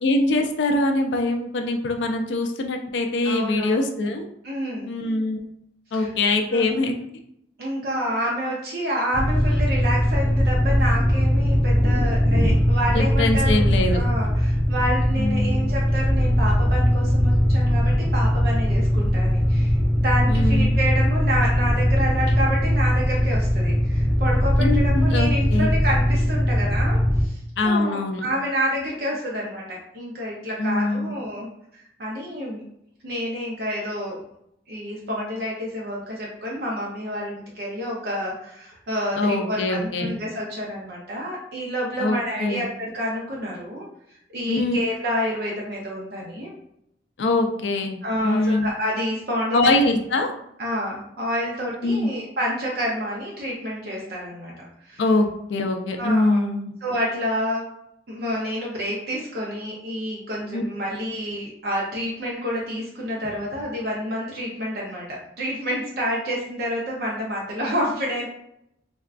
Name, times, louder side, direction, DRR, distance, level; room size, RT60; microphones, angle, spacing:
voice 1, 0.0-4.3 4.9-5.4 5.9-7.1 12.9-14.0 15.2-15.6 20.3-20.8 24.6-25.7 27.6-28.3 30.6-31.1 39.2-40.1 42.0-42.7 44.5-44.8 47.2-48.0 48.2-48.7 49.5-50.3 51.8-52.1 55.0-56.7 60.5-60.6, left 2 dB, 75° left, 4 dB, 0.4 m, -23 dB
voice 2, 3.2-3.8 4.4-4.9 5.9-6.1 6.5-6.7 7.6-13.6 13.9-32.7 33.0-34.2 34.7-46.5 48.0-49.7 50.6-54.5 54.8-55.0 56.0-56.5 56.8-57.6 58.1-68.3, equal, 60° right, -3 dB, 0.6 m, -29 dB
sound 1, 9.1-27.3, equal, 10° left, 0.4 m, -20 dB
3.4 x 2.2 x 2.4 m, 0.76 s
head